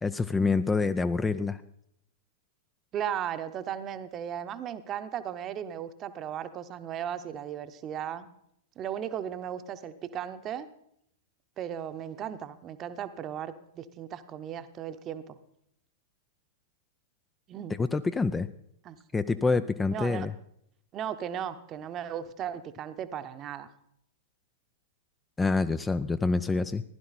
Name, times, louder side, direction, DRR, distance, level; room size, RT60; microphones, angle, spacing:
voice 1, 0.0-1.6 17.8-18.5 19.1-20.3 25.4-26.8, left 4 dB, 10° left, 12 dB, 0.4 m, -26 dB
voice 2, 2.9-8.3 8.8-10.7 11.6-15.4 17.5-17.8 18.8-19.0 19.9-20.3 20.9-23.7, right 9 dB, 30° right, 11 dB, 0.9 m, -36 dB
15.5 x 11.0 x 4.1 m, 0.72 s
figure-of-eight pair, 100°, 0 cm